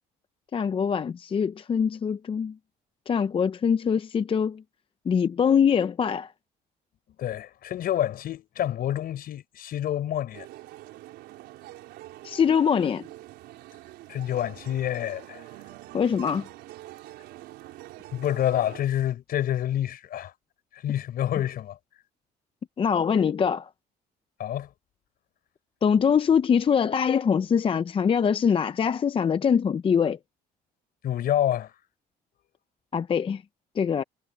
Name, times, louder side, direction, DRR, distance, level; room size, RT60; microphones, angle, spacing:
voice 1, 0.5-2.5 3.1-4.6 5.1-6.3 12.2-13.0 15.9-16.5 22.8-23.7 25.8-30.2 32.9-33.4 33.8-34.0, left 7 dB, 30° left, 0.6 m, -23 dB
voice 2, 7.2-10.5 14.1-15.4 18.1-20.3 20.7-21.8 24.4-24.7 31.0-31.7, left 11 dB, 60° left, 5.1 m, -28 dB
sound 1, 10.3-18.8, right 16 dB, 85° right, 4.2 m, -45 dB
cardioid pair, 110°, 17 cm